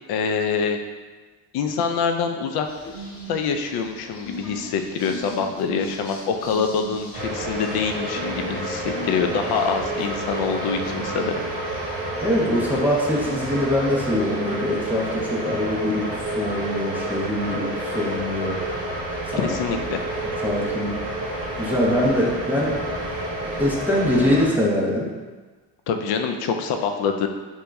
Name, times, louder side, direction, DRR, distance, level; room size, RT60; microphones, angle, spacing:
voice 1, 0.1-0.8 1.5-2.7 3.3-11.4 19.4-20.0 25.9-27.3, left 6 dB, 60° left, 5 dB, 0.5 m, -25 dB
sound 1, 2.6-14.5, equal, 30° left, 0.9 m, -39 dB
sound 2, 7.1-24.5, right 1 dB, 25° right, 1.0 m, -29 dB
voice 2, 12.2-18.6 19.3-19.5 20.4-20.9 21.5-22.8 23.6-25.1, left 1 dB, 5° right, -5 dB, 0.5 m, -23 dB
2.9 x 2.3 x 3.4 m, 1.3 s
supercardioid pair, 95°, 45 cm